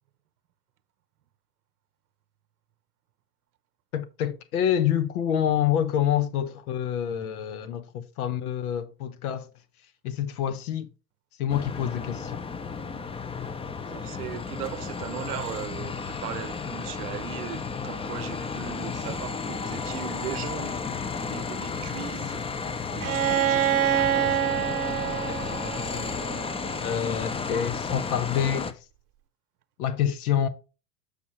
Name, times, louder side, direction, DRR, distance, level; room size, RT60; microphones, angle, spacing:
voice 1, 3.9-9.5 10.0-10.9 11.4-12.4 25.3-26.3 26.8-28.8 29.8-30.5, left 9 dB, 70° left, 1.0 m, -27 dB
sound 1, 11.5-28.7, left 5 dB, 10° left, 0.6 m, -33 dB
voice 2, 13.9-24.5, right 12 dB, 75° right, 0.9 m, -39 dB
Bowed string instrument, 23.0-26.8, right 11 dB, 30° right, 0.8 m, -26 dB
6.9 x 6.6 x 3.0 m
hypercardioid pair, 80°, 46 cm